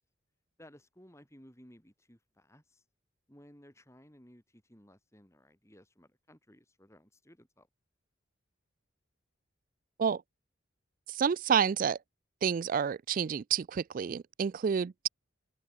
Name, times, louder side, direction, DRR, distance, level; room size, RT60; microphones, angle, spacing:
voice 1, 0.6-2.8 3.3-7.7, equal, 15° left, 6.1 m, -58 dB
voice 2, 11.1-12.0 12.4-15.1, right 7 dB, 45° right, 0.3 m, -29 dB
open air
head